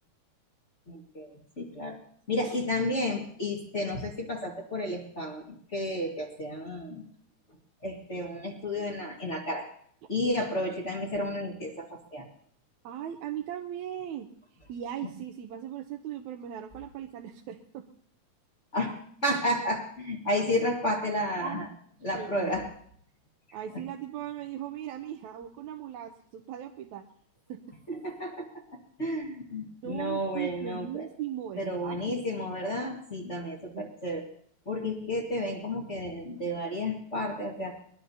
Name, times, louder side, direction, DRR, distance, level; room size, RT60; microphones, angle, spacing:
voice 1, 0.9-2.0 2.3-7.0 7.8-9.7 10.1-12.3 15.0-15.1 18.7-21.6 22.0-22.7 27.9-28.6 29.0-31.0 31.6-34.2 34.6-37.8, left 1 dB, 30° left, -1 dB, 1.7 m, -32 dB
voice 2, 12.8-17.9 21.4-21.7 22.1-22.5 23.5-27.1 27.5-27.6 29.8-32.2 33.7-33.8, right 10 dB, 80° right, 3 dB, 2.1 m, -38 dB
22.0 x 17.5 x 2.8 m, 0.62 s
omnidirectional pair, 3.4 m